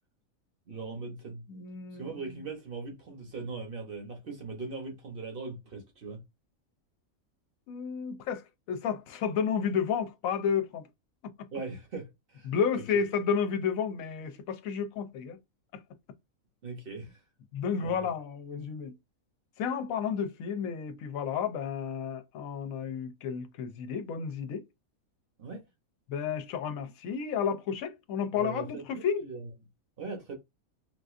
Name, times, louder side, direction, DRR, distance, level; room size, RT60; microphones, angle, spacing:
voice 1, 0.7-1.4 1.9-6.2 11.5-12.8 16.6-17.2 17.8-18.1 25.4-25.6 28.3-29.5 30.0-30.3, right 4 dB, 50° right, 0.9 m, -40 dB
voice 2, 1.5-2.5 7.7-10.9 12.5-15.4 15.7-15.8 17.5-18.9 19.6-24.6 26.1-29.2, left 7 dB, 75° left, 1.0 m, -31 dB
3.7 x 2.5 x 2.4 m
omnidirectional pair, 1.5 m